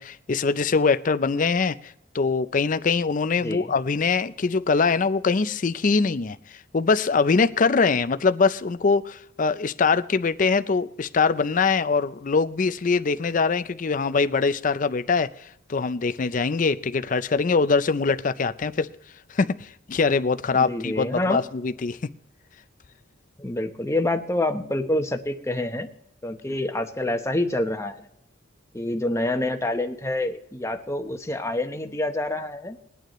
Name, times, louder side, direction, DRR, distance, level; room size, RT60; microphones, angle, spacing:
voice 1, 0.0-18.9 19.3-22.0, left 4 dB, 45° left, 12 dB, 0.5 m, -23 dB
voice 2, 20.5-21.4 23.4-25.9 26.2-28.0 28.7-32.8, left 1 dB, 15° left, 5 dB, 0.9 m, -27 dB
22.0 x 9.1 x 3.1 m, 0.76 s
head